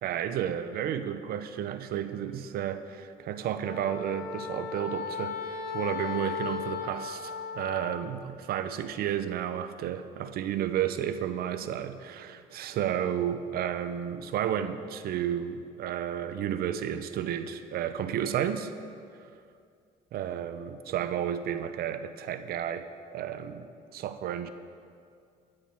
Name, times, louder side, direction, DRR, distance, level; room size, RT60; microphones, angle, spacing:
voice 1, 0.0-18.7 19.1-19.2 20.1-24.5, right 10 dB, 65° right, 10 dB, 0.6 m, -32 dB
Wind instrument woodwind instrument, 3.6-8.0, left 7 dB, 60° left, 0.8 m, -36 dB
9.8 x 8.9 x 4.4 m, 2.3 s
cardioid pair, 110°, 17 cm